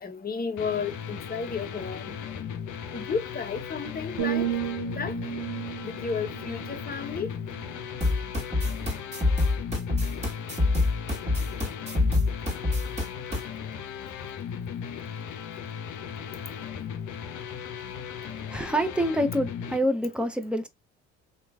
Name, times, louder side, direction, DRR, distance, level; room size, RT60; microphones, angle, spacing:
voice 1, 0.0-2.2 2.9-4.5 4.9-5.1 5.8-7.3, left 5 dB, 25° left, 0.9 m, -32 dB
sound 1, 0.6-19.8, left 7 dB, 60° left, 0.7 m, -37 dB
sound 2, 4.2-8.1 8.6-8.9, right 10 dB, 75° right, 1.0 m, -34 dB
sound 3, 8.0-13.4, left 2 dB, 20° right, 1.8 m, -26 dB
voice 2, 18.2-20.7, equal, 5° right, 0.7 m, -27 dB
3.0 x 2.3 x 2.3 m
hypercardioid pair, 55°, 35 cm